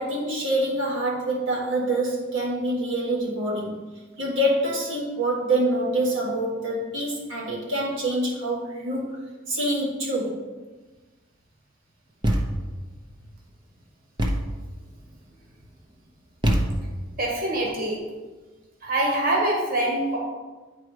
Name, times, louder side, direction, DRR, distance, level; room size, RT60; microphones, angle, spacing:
voice 1, 0.0-3.8 4.2-9.2 9.5-10.4, right 1 dB, 65° right, -4 dB, 1.6 m, -26 dB
Thump thud, 12.2-12.8 14.2-14.6 16.4-17.1, equal, 20° right, 0.7 m, -24 dB
voice 2, 17.2-18.0 18.8-20.2, right 1 dB, 45° right, -2 dB, 1.7 m, -24 dB
9.3 x 4.6 x 4.8 m, 1.3 s
head